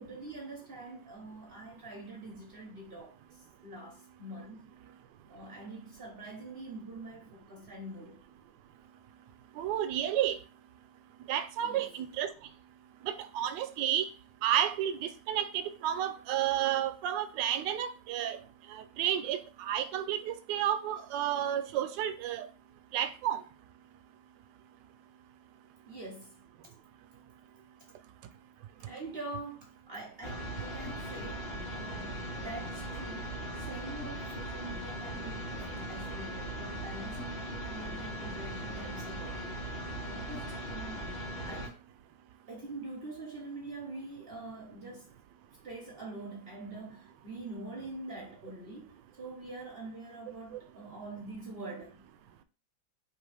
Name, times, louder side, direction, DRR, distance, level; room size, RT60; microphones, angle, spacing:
voice 1, 0.0-3.2 3.6-4.7 5.3-8.2 11.6-11.9 25.8-26.4 28.9-39.4 40.0-41.0 41.4-41.7 42.5-45.1 45.6-52.0, right 2 dB, 45° right, 0.7 m, -45 dB
voice 2, 9.6-10.4 11.3-12.3 13.0-14.1 14.4-18.4 18.7-22.5 22.9-23.4, right 10 dB, 75° right, 1.2 m, -31 dB
sound 1, 30.2-41.7, right 1 dB, 90° left, 2.3 m, -39 dB
4.5 x 3.1 x 3.3 m
omnidirectional pair, 2.1 m